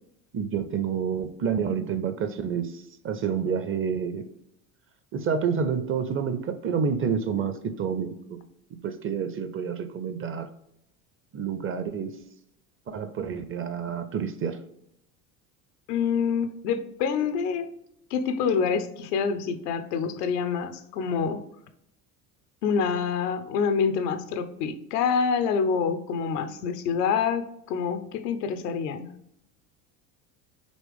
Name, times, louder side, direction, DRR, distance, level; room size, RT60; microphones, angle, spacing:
voice 1, 0.3-2.7 3.0-4.3 5.1-8.4 8.8-10.5 11.3-12.2 12.9-14.6, right 6 dB, 30° right, 10 dB, 0.5 m, -28 dB
voice 2, 15.9-17.7 18.1-21.4 22.6-29.1, left 6 dB, 85° left, 10 dB, 0.7 m, -26 dB
5.3 x 3.0 x 3.3 m, 0.77 s
hypercardioid pair, 75°, 46 cm